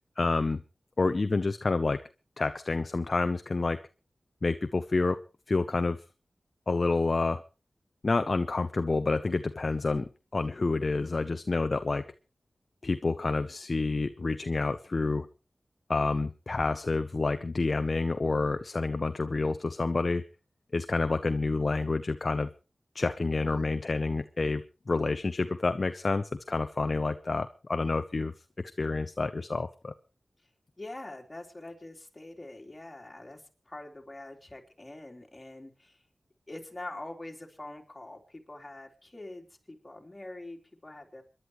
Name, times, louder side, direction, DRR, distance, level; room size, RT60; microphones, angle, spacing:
voice 1, 0.2-0.6 1.0-2.0 2.4-3.8 4.4-5.2 5.5-6.0 6.7-7.4 8.0-12.1 12.8-15.3 15.9-20.2 20.7-22.5 22.9-28.3 28.8-29.9, left 3 dB, 55° left, 10 dB, 0.7 m, -28 dB
voice 2, 30.8-36.0 36.5-41.2, left 2 dB, 30° left, 1 dB, 3.6 m, -44 dB
26.5 x 11.5 x 3.1 m, 0.31 s
cardioid pair, 50°, 0 cm